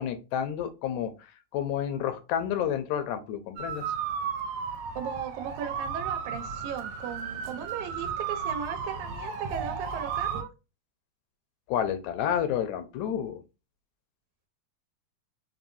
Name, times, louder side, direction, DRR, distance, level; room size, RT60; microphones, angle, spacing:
voice 1, 0.0-3.8 11.7-13.4, left 9 dB, 85° left, 9 dB, 1.9 m, -30 dB
sound 1, 3.6-10.4, right 6 dB, 75° right, 1.9 m, -34 dB
voice 2, 5.0-10.5, right 8 dB, 90° right, 7 dB, 2.0 m, -37 dB
5.4 x 2.6 x 2.6 m, 0.29 s
omnidirectional pair, 3.3 m